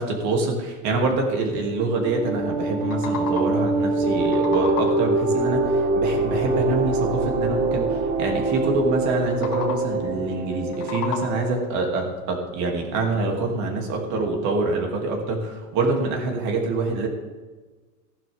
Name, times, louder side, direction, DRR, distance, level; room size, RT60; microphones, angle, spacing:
voice 1, 0.0-17.1, right 3 dB, 35° right, 1 dB, 2.7 m, -25 dB
sound 1, 1.5-11.8, right 2 dB, 15° right, 1.5 m, -24 dB
sound 2, 2.6-3.7 4.1-5.2 9.2-10.1 10.5-11.6, left 7 dB, 75° left, 2.4 m, -34 dB
16.0 x 11.5 x 3.6 m, 1.3 s
hypercardioid pair, 135°, 48 cm